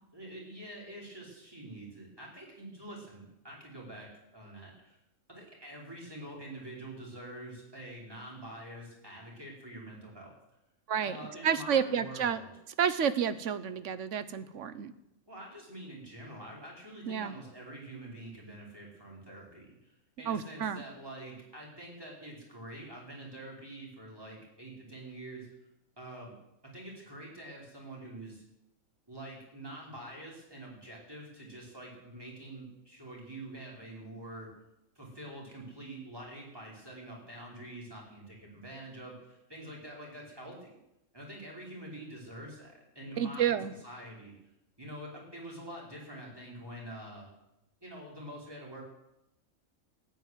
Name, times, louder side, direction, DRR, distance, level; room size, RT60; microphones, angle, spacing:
voice 1, 0.1-5.0 5.3-10.4 11.0-12.5 15.3-19.9 20.2-25.5 26.0-26.3 26.6-28.4 29.1-34.5 34.9-40.8 41.1-43.6 43.8-44.3 44.8-47.3 47.8-48.8, right 1 dB, 15° right, -3 dB, 4.8 m, -46 dB
voice 2, 11.4-12.4 12.8-14.9 17.1-17.3 20.3-20.8 43.2-43.7, right 8 dB, 65° right, 13 dB, 1.2 m, -30 dB
13.5 x 9.0 x 9.3 m, 0.87 s
omnidirectional pair, 1.4 m